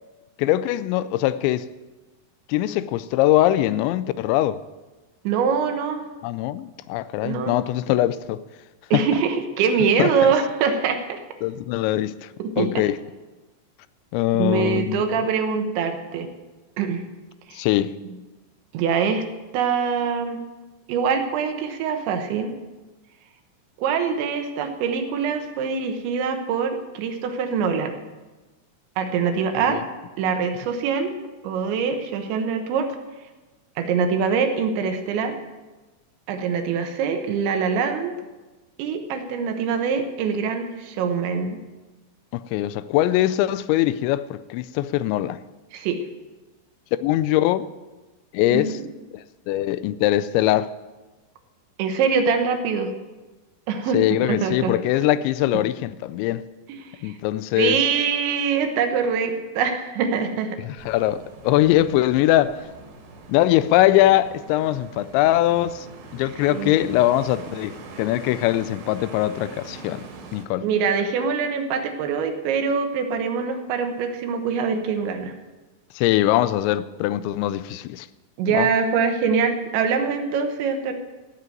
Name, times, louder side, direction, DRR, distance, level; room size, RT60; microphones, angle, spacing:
voice 1, 0.4-1.7 2.5-4.6 6.2-8.4 10.0-10.1 11.4-12.3 12.6-13.0 14.1-15.0 17.5-18.0 29.7-29.8 42.3-45.4 46.9-47.7 48.3-48.8 49.1-50.7 53.9-56.4 57.0-57.8 60.6-62.6 63.3-65.9 66.1-70.0 70.3-70.7 76.0-78.1 78.5-78.7, left 14 dB, 85° left, 2.9 m, -22 dB
voice 2, 5.3-6.0 7.2-7.6 8.9-11.2 12.4-12.8 14.4-16.3 16.8-17.0 17.5-17.7 18.7-19.2 19.5-20.4 20.9-22.5 23.8-28.0 29.0-29.8 30.2-31.1 31.4-32.9 33.8-35.4 36.3-38.1 38.8-41.6 45.7-46.0 48.5-48.7 51.8-52.9 53.7-54.0 54.2-55.1 56.7-57.2 57.6-60.6 66.5-66.8 70.6-75.3 78.4-80.9, right 6 dB, 80° right, 3.4 m, -24 dB
sound 1, 60.8-70.5, right 3 dB, 65° right, 3.5 m, -42 dB
14.5 x 6.9 x 9.0 m
omnidirectional pair, 5.2 m